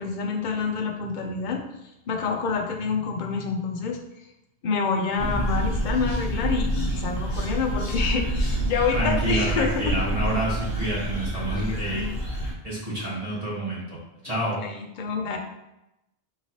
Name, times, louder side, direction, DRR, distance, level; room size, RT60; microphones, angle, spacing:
voice 1, 0.0-1.6 2.1-4.0 4.6-10.2 11.5-12.2 14.2-14.3 14.6-15.4, left 5 dB, 55° left, 3 dB, 0.6 m, -27 dB
sound 1, 5.2-12.5, right 1 dB, 35° left, 0.9 m, -27 dB
voice 2, 8.9-12.1 12.6-14.0 14.2-14.6, right 1 dB, 40° right, -8 dB, 1.2 m, -28 dB
3.8 x 3.0 x 2.8 m, 0.91 s
omnidirectional pair, 1.0 m